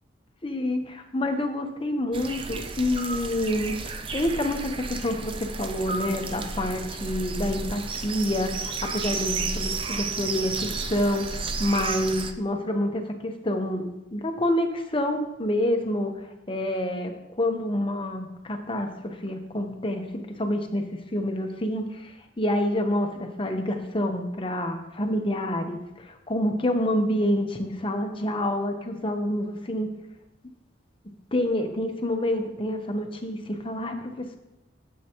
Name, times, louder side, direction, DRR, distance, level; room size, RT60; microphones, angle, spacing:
voice 1, 0.4-3.7 4.1-13.8 14.1-16.1 16.5-17.1 17.4-20.0 20.4-20.8 21.1-29.9 31.3-34.4, left 1 dB, 30° left, 5 dB, 0.9 m, -27 dB
sound 1, 2.1-12.3, right 4 dB, 30° right, 0.5 m, -32 dB
12.0 x 7.5 x 3.0 m, 0.94 s
head